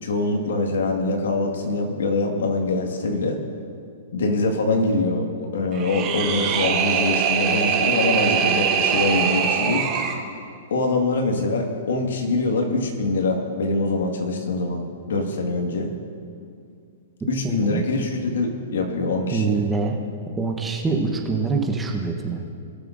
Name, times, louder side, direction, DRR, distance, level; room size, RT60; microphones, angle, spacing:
voice 1, 0.0-3.4 4.1-9.9 10.7-15.9 17.3-19.6, left 2 dB, 80° left, 2 dB, 1.7 m, -24 dB
sound 1, 5.7-10.2, right 7 dB, 30° right, 1.3 m, -22 dB
voice 2, 17.4-17.9 19.3-20.0 20.4-22.4, right 4 dB, 10° right, 2 dB, 0.9 m, -24 dB
20.0 x 6.7 x 2.6 m, 2.3 s
hypercardioid pair, 145°, 0 cm